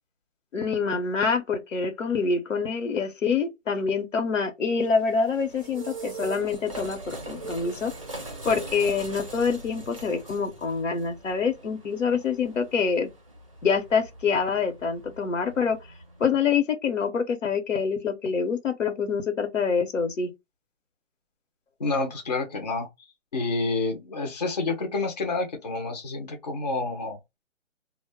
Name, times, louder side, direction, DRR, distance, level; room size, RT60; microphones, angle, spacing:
voice 1, 0.5-7.9 8.4-13.1 13.6-15.8 16.2-20.3, left 5 dB, 80° left, 0.9 m, -26 dB
sound 1, 4.8-16.2, right 3 dB, 30° right, 0.5 m, -41 dB
voice 2, 21.8-22.9 23.3-27.2, left 3 dB, 35° left, 0.6 m, -28 dB
2.1 x 2.0 x 3.4 m
hypercardioid pair, 170°, 37 cm